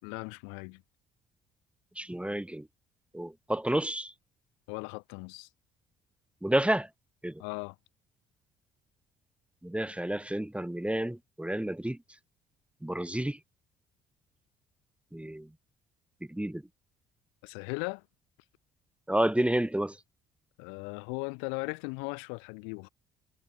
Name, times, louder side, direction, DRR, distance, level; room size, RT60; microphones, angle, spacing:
voice 1, 0.0-0.8 4.7-5.5 7.4-7.8 17.4-18.0 20.6-22.9, left 38 dB, 80° left, 5.8 m, -38 dB
voice 2, 2.0-2.7 3.1-4.1 6.4-6.9 7.2-7.4 9.6-12.0 12.8-13.4 15.1-15.5 16.3-16.6 19.1-20.0, right 1 dB, 5° right, 4.9 m, -30 dB
hypercardioid pair, 60°, 18 cm